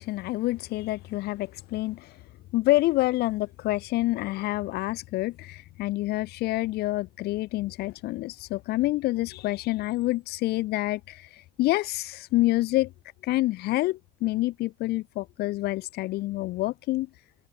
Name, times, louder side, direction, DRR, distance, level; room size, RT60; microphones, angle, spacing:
voice 1, 0.0-2.1 2.5-11.3 11.6-12.9 13.2-17.1, left 18 dB, 55° left, 4.2 m, -27 dB
figure-of-eight pair, 60°, 20 cm